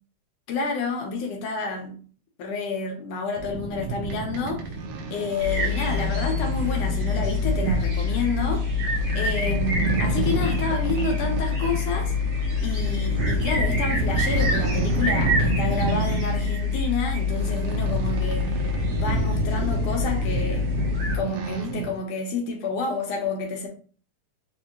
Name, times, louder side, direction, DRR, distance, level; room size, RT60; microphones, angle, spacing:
voice 1, 0.5-2.0 2.4-4.7 5.1-8.7 9.1-12.1 12.6-20.6 21.1-23.7, left 4 dB, 70° left, 1.7 m, -29 dB
sound 1, 3.4-21.9, right 3 dB, 75° right, 1.4 m, -29 dB
sound 2, 5.4-21.2, left 4 dB, 55° right, 2.0 m, -26 dB
4.9 x 2.7 x 2.8 m
omnidirectional pair, 3.4 m